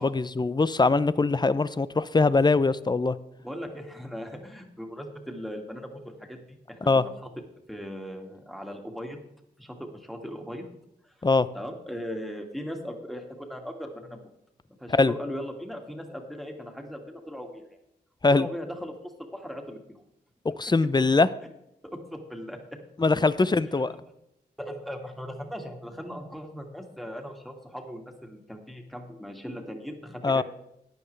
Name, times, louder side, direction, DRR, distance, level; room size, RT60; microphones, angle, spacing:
voice 1, 0.0-3.2 6.9-7.0 11.2-11.5 14.9-15.1 18.2-18.5 20.4-21.3 23.0-23.9 30.2-30.4, left 3 dB, 25° left, 16 dB, 0.6 m, -22 dB
voice 2, 3.4-7.3 7.7-9.2 9.6-10.6 11.0-11.2 11.5-14.2 14.8-17.6 18.4-20.0 21.8-22.8 23.9-24.0 24.6-30.4, equal, ahead, 2 dB, 2.2 m, -39 dB
14.5 x 9.7 x 3.3 m, 0.81 s
cardioid pair, 50°, 19 cm